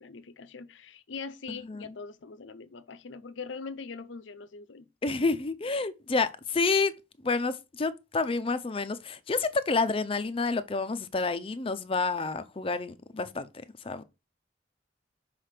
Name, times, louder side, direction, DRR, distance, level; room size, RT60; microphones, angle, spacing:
voice 1, 0.0-4.9, left 5 dB, 80° left, 0.6 m, -42 dB
voice 2, 1.5-1.9 5.0-6.9 7.2-13.5 13.8-14.0, left 4 dB, 30° left, 0.5 m, -29 dB
5.5 x 3.4 x 5.7 m
head